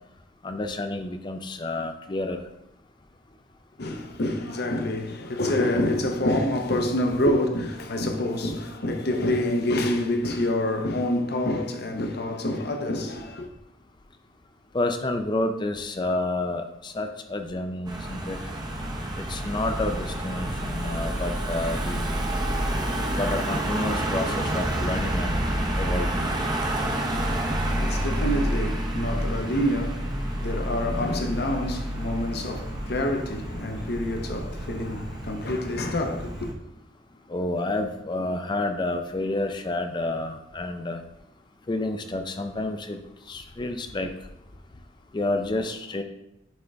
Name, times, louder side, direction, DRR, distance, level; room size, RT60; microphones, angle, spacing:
voice 1, 0.4-2.4 14.7-18.4 19.2-22.1 23.1-25.4 25.8-26.3 37.3-41.0 41.7-43.0 43.3-44.1 45.1-46.0, left 2 dB, 25° left, 0.4 m, -29 dB
voice 2, 3.8-13.5 27.1-36.5, left 1 dB, 55° left, 0.8 m, -27 dB
Car passing by / Engine, 17.9-36.5, right 1 dB, 20° right, 0.8 m, -29 dB
9.2 x 3.7 x 3.4 m
head